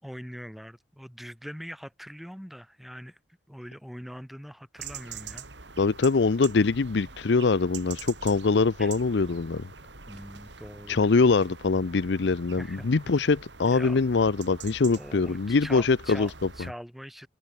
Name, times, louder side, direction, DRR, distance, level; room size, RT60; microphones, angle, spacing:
voice 1, 0.0-3.2 3.5-5.5 8.8-8.9 10.1-11.3 12.6-12.9 13.1-13.2 13.6-14.0 14.9-17.3, equal, ahead, 4.7 m, -43 dB
sound 1, 4.8-16.7, right 5 dB, 85° right, 3.7 m, -45 dB
voice 2, 5.8-9.7 10.9-16.3, left 4 dB, 75° left, 0.6 m, -23 dB
head